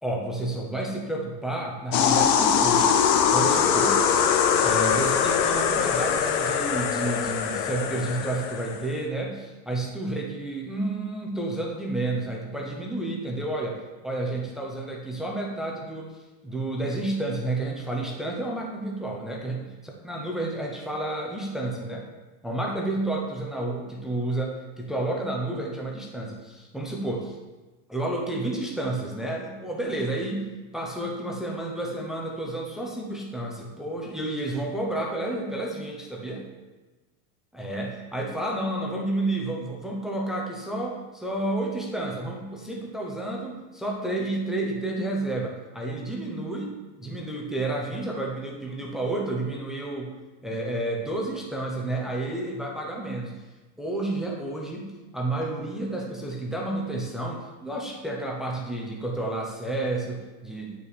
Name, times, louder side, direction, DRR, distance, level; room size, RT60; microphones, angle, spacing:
voice 1, 0.0-4.1 4.6-16.1 16.4-22.1 22.4-27.4 27.9-36.5 37.5-50.1 50.4-53.3 53.8-60.8, right 2 dB, ahead, -1 dB, 0.7 m, -30 dB
sound 1, 1.9-8.8, left 7 dB, 85° left, 1.0 m, -22 dB
9.1 x 5.6 x 4.2 m, 1.2 s
supercardioid pair, 145°, 49 cm